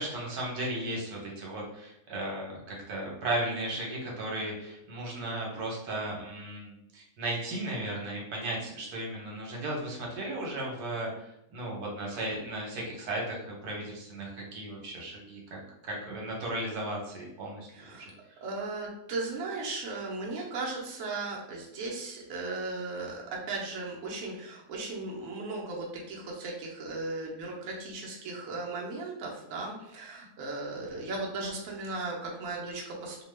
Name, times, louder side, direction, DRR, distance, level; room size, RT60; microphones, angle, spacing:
voice 1, 0.0-15.6 15.8-18.1, right 1 dB, 90° right, -2 dB, 1.3 m, -35 dB
voice 2, 17.7-18.1 18.4-33.2, right 3 dB, 70° right, -2 dB, 1.0 m, -36 dB
2.8 x 2.2 x 3.1 m, 0.83 s
omnidirectional pair, 1.6 m